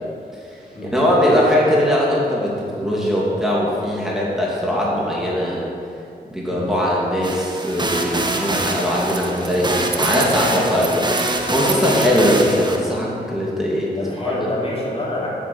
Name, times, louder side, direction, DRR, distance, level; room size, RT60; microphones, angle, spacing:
voice 1, 0.5-5.6 6.3-14.0, equal, ahead, -5 dB, 2.9 m, -20 dB
sound 1, 7.2-12.8, right 2 dB, 25° right, 1.4 m, -24 dB
sound 2, 9.0-9.6 9.8-12.5, right 8 dB, 90° right, 0.8 m, -30 dB
voice 2, 14.0-15.3, left 1 dB, 35° left, -5 dB, 3.1 m, -26 dB
9.1 x 8.2 x 8.1 m, 2.5 s
cardioid pair, 70°, 17 cm